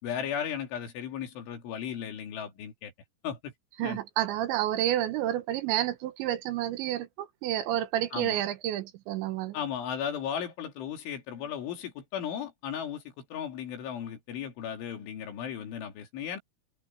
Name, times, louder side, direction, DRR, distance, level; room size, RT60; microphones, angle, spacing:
voice 1, 0.0-2.9 3.2-3.5 3.8-4.0 8.1-8.4 9.5-16.4, left 8 dB, 75° left, 5.4 m, -36 dB
voice 2, 3.8-9.6, right 12 dB, 75° right, 3.2 m, -30 dB
omnidirectional pair, 5.6 m